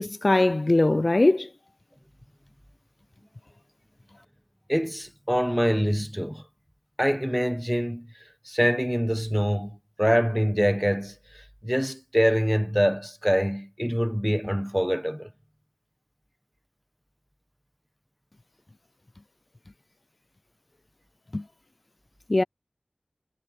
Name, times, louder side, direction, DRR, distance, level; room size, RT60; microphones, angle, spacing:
voice 1, 0.0-1.5 21.3-21.4 22.3-22.4, left 2 dB, 45° left, 0.6 m, -21 dB
voice 2, 4.7-6.4 7.0-8.1 8.4-15.3, equal, 5° right, 1.3 m, -25 dB
wide cardioid pair, 45°, 0 cm